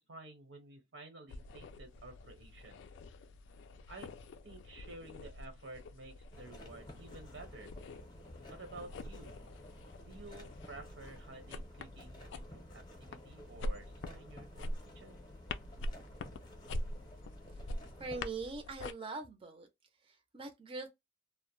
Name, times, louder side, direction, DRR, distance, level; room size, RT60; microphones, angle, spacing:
voice 1, 0.0-2.8 3.9-4.1 4.4-7.7 8.5-9.4 10.0-15.2, right 2 dB, 85° right, 0.9 m, -52 dB
sound 1, 1.3-18.9, left 1 dB, 70° left, 0.3 m, -45 dB
sound 2, 6.3-18.2, equal, 25° left, 0.6 m, -53 dB
voice 2, 18.0-19.7 20.1-20.9, right 3 dB, 30° right, 0.4 m, -42 dB
2.1 x 2.0 x 2.9 m
head